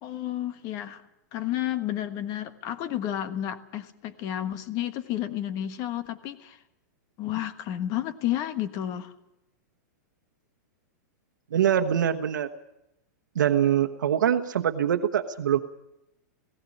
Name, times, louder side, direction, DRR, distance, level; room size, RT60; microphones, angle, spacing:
voice 1, 0.0-1.0 1.3-6.6 7.2-9.1, left 12 dB, 35° left, 11 dB, 1.4 m, -31 dB
voice 2, 11.5-12.5 13.3-15.6, right 9 dB, 85° right, 5 dB, 1.1 m, -24 dB
17.0 x 15.5 x 9.9 m, 0.88 s
hypercardioid pair, 145°, 10 cm